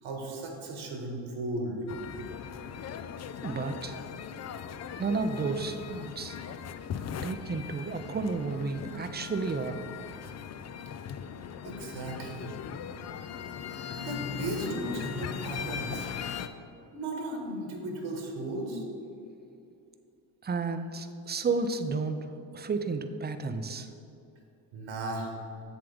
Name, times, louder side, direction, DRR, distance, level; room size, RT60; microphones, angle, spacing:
voice 1, 0.0-1.8 11.6-12.5 14.0-16.1 16.9-18.8 24.7-25.4, right 1 dB, 65° right, 1 dB, 1.7 m, -36 dB
sound 1, 1.9-16.5, left 8 dB, 35° left, 0.4 m, -39 dB
voice 2, 3.4-4.0 5.0-6.4 7.2-9.8 20.4-23.9, right 4 dB, 20° right, 9 dB, 0.5 m, -32 dB
7.6 x 7.1 x 3.5 m, 2.6 s
supercardioid pair, 60°, 49 cm